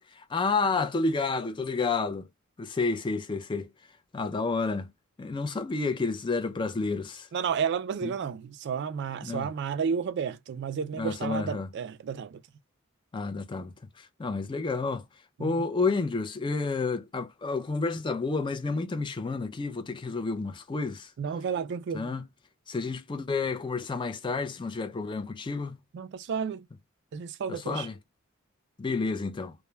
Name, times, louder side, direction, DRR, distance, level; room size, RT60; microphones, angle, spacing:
voice 1, 0.1-2.3 2.6-3.7 4.1-4.9 5.2-7.3 8.0-8.1 9.2-9.5 11.0-11.7 13.1-15.0 15.4-21.1 21.9-22.3 22.7-25.8 27.5-28.0 28.8-29.5, left 4 dB, 25° left, 0.4 m, -30 dB
voice 2, 7.3-12.4 15.4-15.6 21.2-22.1 25.9-26.7 27.1-27.9, right 6 dB, 55° right, 0.3 m, -32 dB
2.2 x 2.1 x 3.1 m
head